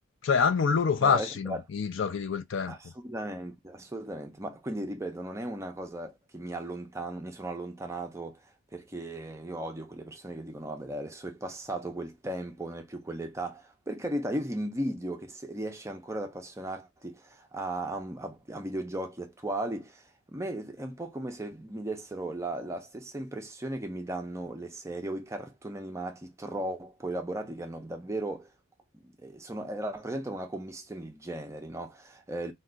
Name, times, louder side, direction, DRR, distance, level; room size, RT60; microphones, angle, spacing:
voice 1, 0.2-2.8, left 6 dB, 55° left, 0.4 m, -26 dB
voice 2, 1.0-1.6 2.7-28.5 29.0-32.5, right 1 dB, 15° right, 0.4 m, -36 dB
2.3 x 2.3 x 3.7 m
head